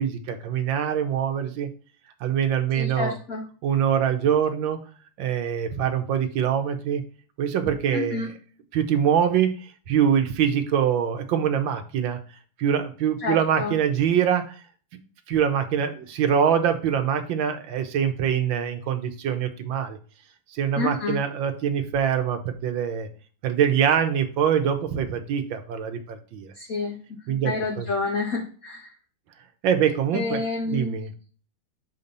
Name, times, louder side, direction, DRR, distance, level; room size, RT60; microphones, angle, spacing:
voice 1, 0.0-1.7 2.2-3.1 3.6-4.8 5.2-7.0 7.4-8.3 8.7-12.2 12.6-14.5 15.3-20.0 20.5-23.1 23.4-26.5 27.3-27.9 29.6-30.4 30.7-31.1, right 8 dB, 70° right, 7 dB, 1.5 m, -24 dB
voice 2, 2.7-3.5 7.9-8.3 13.2-13.7 20.8-21.2 26.5-27.0 27.4-28.9 30.1-31.0, left 3 dB, 50° left, 0 dB, 1.2 m, -28 dB
6.6 x 2.8 x 5.1 m, 0.40 s
omnidirectional pair, 2.3 m